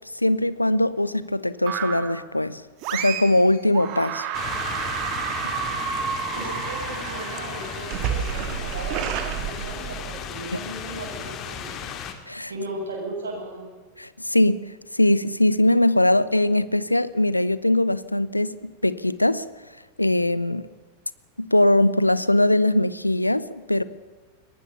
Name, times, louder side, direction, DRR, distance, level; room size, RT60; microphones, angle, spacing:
voice 1, 0.1-2.6 2.9-4.3 12.3-12.5 14.0-19.4 20.0-20.7 21.4-23.8, left 1 dB, 85° left, 0.8 m, -21 dB
sound 1, 1.7-2.2 2.8-3.4 3.7-10.2, right 9 dB, 40° right, 2.7 m, -30 dB
sound 2, 4.3-12.1, left 8 dB, 35° left, 2.6 m, -35 dB
voice 2, 6.3-11.9 12.5-13.6, right 2 dB, 65° right, 7.8 m, -36 dB
22.5 x 19.5 x 7.0 m
figure-of-eight pair, 90°, 0 cm